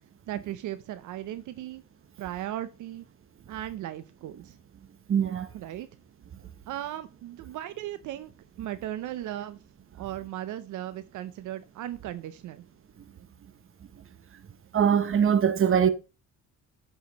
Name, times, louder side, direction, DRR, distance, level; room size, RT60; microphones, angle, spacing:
voice 1, 0.3-1.8 2.2-3.1 3.5-4.6 5.5-5.9 6.7-8.3 8.6-9.6 10.0-12.6, right 13 dB, 80° right, 0.6 m, -37 dB
voice 2, 5.1-5.5 14.7-15.9, right 8 dB, 45° right, 1.0 m, -22 dB
10.5 x 5.0 x 3.9 m
cardioid pair, 90°, 30 cm